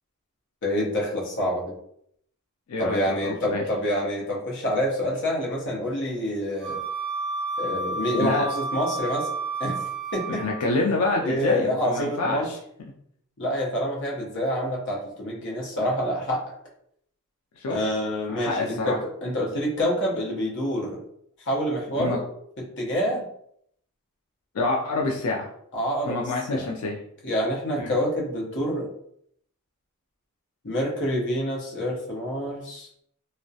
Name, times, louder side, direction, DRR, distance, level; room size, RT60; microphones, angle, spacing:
voice 1, 0.6-1.7 2.8-6.8 7.6-9.3 9.6-9.8 10.1-10.4 11.2-12.5 13.4-16.4 17.7-21.0 21.5-22.2 22.6-23.2 25.7-26.2 26.5-26.7 27.2-28.9 30.6-32.9, equal, 55° left, -3 dB, 0.7 m, -27 dB
voice 2, 2.7-3.6 8.2-8.4 10.3-12.6 17.6-17.8 18.3-19.0 22.0-22.2 24.5-25.5 26.1-27.0 27.8-27.9, left 2 dB, 90° left, -1 dB, 0.4 m, -27 dB
Wind instrument woodwind instrument, 6.6-10.7, right 3 dB, 5° left, 0.7 m, -31 dB
2.3 x 2.1 x 2.6 m, 0.70 s
head